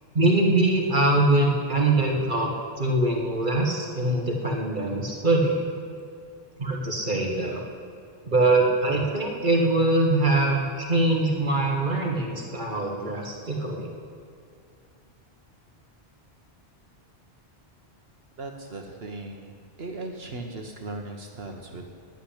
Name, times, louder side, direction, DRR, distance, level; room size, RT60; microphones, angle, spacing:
voice 1, 0.1-2.5 2.8-5.6 6.6-7.6 8.3-13.9, right 2 dB, 45° right, 0 dB, 1.7 m, -23 dB
voice 2, 18.4-19.5 19.8-21.9, right 2 dB, 65° right, 2 dB, 1.3 m, -37 dB
10.5 x 9.1 x 9.9 m, 2.4 s
omnidirectional pair, 1.1 m